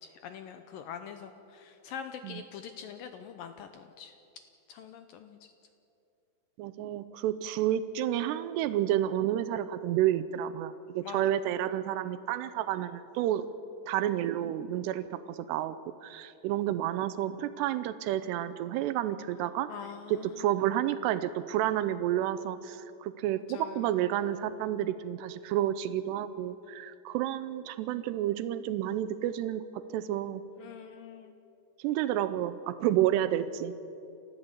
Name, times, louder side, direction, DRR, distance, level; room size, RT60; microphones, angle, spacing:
voice 1, 0.0-4.1 4.7-5.5 11.0-11.2 19.7-20.5 23.5-23.9 30.6-31.4, left 7 dB, 75° left, 8 dB, 2.1 m, -44 dB
voice 2, 6.6-13.5 13.9-19.7 20.1-30.4 31.8-33.8, right 12 dB, 90° right, 13 dB, 2.8 m, -30 dB
29.5 x 14.0 x 8.1 m, 2.7 s
omnidirectional pair, 4.8 m